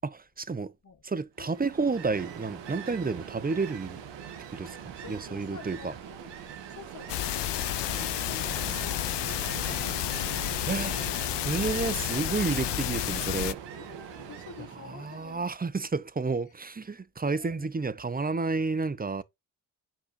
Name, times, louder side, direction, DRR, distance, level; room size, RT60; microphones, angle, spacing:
voice 1, 0.0-0.7 1.0-4.0 4.5-4.7 5.1-5.9 10.7-11.0 11.4-13.6 14.9-19.2, right 4 dB, 20° right, 0.7 m, -30 dB
Ocean, 1.4-15.5, right 8 dB, 85° right, 1.4 m, -42 dB
voice 2, 4.6-6.4 6.7-10.2 13.8-15.5 16.3-16.4 16.8-16.9 17.2-17.8, left 6 dB, 45° left, 1.7 m, -49 dB
sound 1, 7.1-13.5, left 16 dB, 75° left, 0.6 m, -31 dB
8.6 x 4.9 x 2.6 m
supercardioid pair, 50°, 42 cm